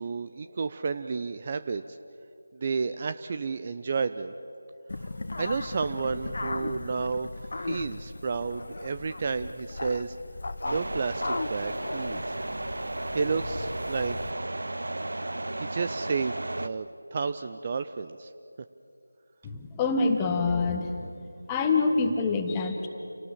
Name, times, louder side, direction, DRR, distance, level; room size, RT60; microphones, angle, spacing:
voice 1, 0.0-2.0 2.5-4.3 5.4-7.3 7.6-10.1 10.6-12.3 13.1-14.2 15.6-16.9 17.1-18.3, right 5 dB, 30° right, 10 dB, 0.5 m, -31 dB
sound 1, 4.9-14.3, left 2 dB, 50° left, 1.1 m, -37 dB
sound 2, 10.6-16.7, right 2 dB, 65° right, 0.9 m, -34 dB
voice 2, 19.4-21.1 21.5-22.9, left 4 dB, 10° left, 4 dB, 1.4 m, -26 dB
29.0 x 18.5 x 7.4 m, 2.6 s
figure-of-eight pair, 165°, 0 cm